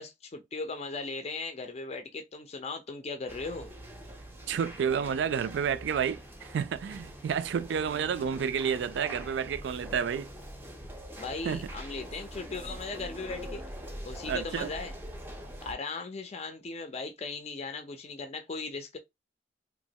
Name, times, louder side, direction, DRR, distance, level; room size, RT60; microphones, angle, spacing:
voice 1, 0.0-3.7 11.2-13.6 14.0-14.9 15.6-19.0, left 3 dB, 35° left, 0.4 m, -38 dB
sound 1, 3.3-15.7, equal, 10° right, 0.6 m, -43 dB
voice 2, 4.5-10.3 11.4-11.7 14.3-14.7, right 7 dB, 80° right, 0.3 m, -30 dB
2.9 x 2.2 x 2.7 m
head